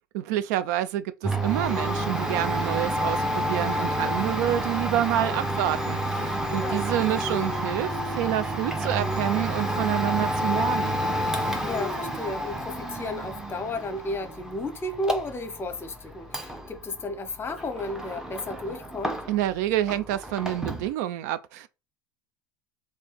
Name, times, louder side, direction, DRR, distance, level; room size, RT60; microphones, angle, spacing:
voice 1, 0.1-11.0 19.3-21.7, right 12 dB, 60° right, 0.4 m, -28 dB
Domestic sounds home sounds, 1.2-19.6 19.8-20.9, right 1 dB, 5° right, 0.9 m, -29 dB
voice 2, 11.6-19.2, left 2 dB, 25° left, 0.9 m, -33 dB
3.2 x 2.8 x 4.6 m
figure-of-eight pair, 75°, 10 cm